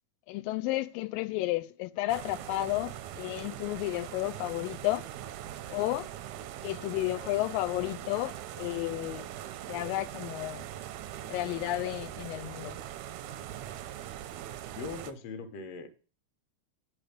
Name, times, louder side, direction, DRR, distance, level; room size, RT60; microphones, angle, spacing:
voice 1, 0.3-5.0 5.7-6.1 6.6-9.3 9.7-10.7 11.3-12.8, left 17 dB, 90° left, 2.3 m, -32 dB
sound 1, 2.1-15.1, right 11 dB, 80° right, 1.7 m, -42 dB
voice 2, 14.7-15.9, left 4 dB, 65° left, 1.7 m, -40 dB
8.7 x 5.3 x 5.0 m
omnidirectional pair, 3.9 m